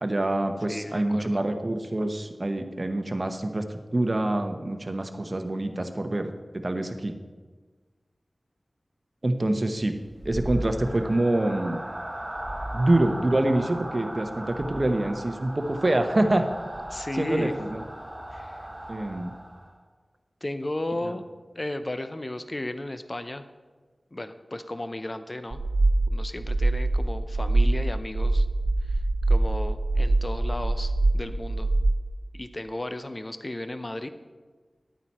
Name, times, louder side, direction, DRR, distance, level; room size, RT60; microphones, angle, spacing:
voice 1, 0.0-3.6 3.9-7.1 9.2-9.9 10.2-11.8 12.7-16.4 17.1-17.8 18.9-19.3, right 1 dB, 45° right, 6 dB, 1.0 m, -26 dB
voice 2, 0.7-1.4 16.9-17.5 18.3-18.6 20.4-21.2 21.5-23.5 24.1-25.6 26.1-28.5 29.3-31.7 32.3-34.1, left 1 dB, 40° left, 10 dB, 0.7 m, -34 dB
sound 1, 9.8-19.8, right 1 dB, 20° right, 1.7 m, -37 dB
sound 2, 25.5-31.9, right 2 dB, 85° right, 1.4 m, -24 dB
11.5 x 9.0 x 4.3 m, 1.4 s
cardioid pair, 40°, 0 cm